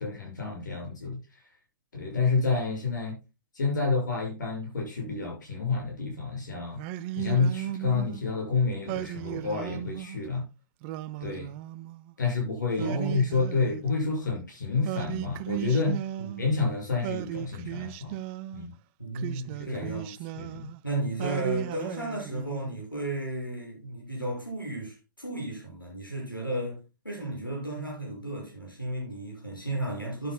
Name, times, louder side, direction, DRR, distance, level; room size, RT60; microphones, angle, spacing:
voice 1, 0.0-1.4 1.9-3.2 3.5-6.8 7.1-10.4 11.2-11.5 12.2-16.0 16.4-18.1 18.5-18.7 19.6-20.0 20.3-20.7, left 4 dB, 65° left, 6.6 m, -29 dB
Singing, 6.8-8.2 8.9-10.2 10.8-12.1 12.8-14.3 14.8-16.6 17.0-18.7 19.1-20.8 21.2-22.8, right 14 dB, 35° right, 0.5 m, -36 dB
voice 2, 12.8-13.2 16.2-16.4 19.0-20.3 20.8-30.3, right 1 dB, 90° left, 6.2 m, -34 dB
12.5 x 10.5 x 2.2 m
figure-of-eight pair, 110°, 11 cm